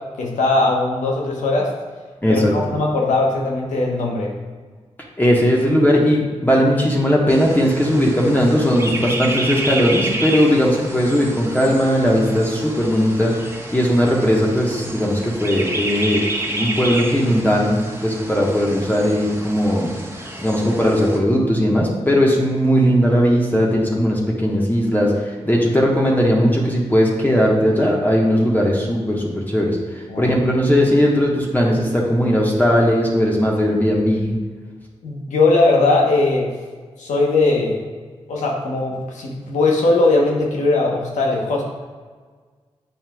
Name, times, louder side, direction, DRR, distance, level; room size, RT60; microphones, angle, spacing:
voice 1, 0.2-1.7 2.3-4.3 30.1-30.3 35.0-36.5 37.0-37.8 38.3-41.6, left 2 dB, 90° left, -1 dB, 1.0 m, -19 dB
voice 2, 5.2-20.0 20.4-34.4, equal, 15° left, -2 dB, 1.2 m, -18 dB
sound 1, 7.3-21.2, right 1 dB, 20° right, 1.2 m, -30 dB
7.4 x 5.5 x 2.3 m, 1.5 s
supercardioid pair, 40°, 12 cm